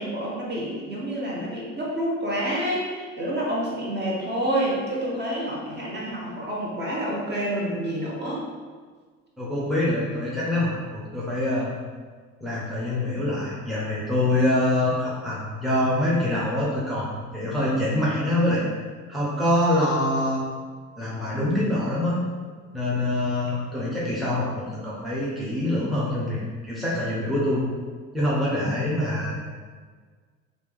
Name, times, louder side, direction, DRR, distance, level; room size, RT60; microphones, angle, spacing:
voice 1, 0.0-8.4, right 1 dB, 25° right, -4 dB, 1.0 m, -28 dB
voice 2, 9.4-11.7 12.4-18.6 19.1-20.4 21.0-22.2 22.7-27.7 28.1-29.3, left 1 dB, ahead, -7 dB, 0.8 m, -25 dB
3.2 x 2.6 x 3.4 m, 1.5 s
figure-of-eight pair, 55°, 40 cm